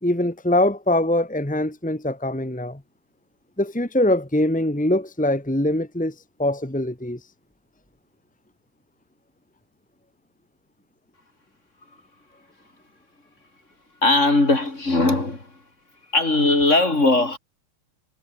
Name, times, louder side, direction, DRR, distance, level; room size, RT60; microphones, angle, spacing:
voice 1, 0.0-2.8 3.6-7.2, left 1 dB, 5° left, 0.6 m, -23 dB
voice 2, 14.0-15.5 16.1-17.4, left 2 dB, 20° left, 4.4 m, -19 dB
omnidirectional pair, 3.6 m